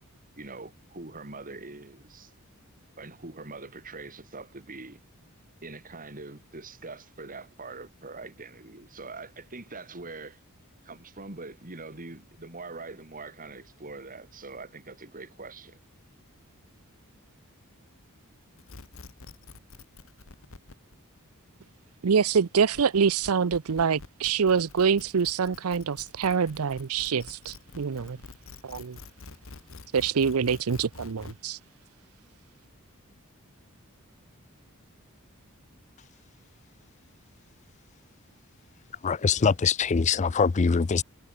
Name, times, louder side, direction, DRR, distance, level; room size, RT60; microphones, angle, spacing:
voice 1, 0.4-2.3 3.0-5.0 5.6-10.4 10.8-15.8, right 3 dB, 40° right, 3.0 m, -43 dB
sound 1, 18.6-31.3, left 3 dB, 65° left, 1.4 m, -47 dB
voice 2, 22.0-28.2 28.6-29.0 29.9-31.6, right 6 dB, 80° right, 0.6 m, -25 dB
voice 3, 39.0-41.0, left 5 dB, 35° left, 0.4 m, -23 dB
head